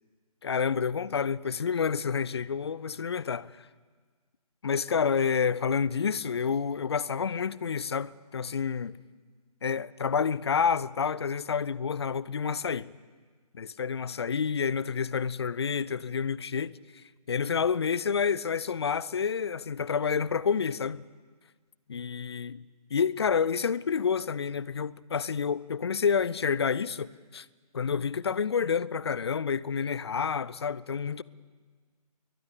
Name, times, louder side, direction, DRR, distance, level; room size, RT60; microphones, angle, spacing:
voice 1, 0.4-3.5 4.6-9.0 9.6-12.9 13.5-16.8 17.3-21.1 21.9-22.6 22.9-27.5 27.7-31.2, left 6 dB, 40° left, 0.8 m, -29 dB
30.0 x 23.0 x 8.4 m
figure-of-eight pair, 145°, 20 cm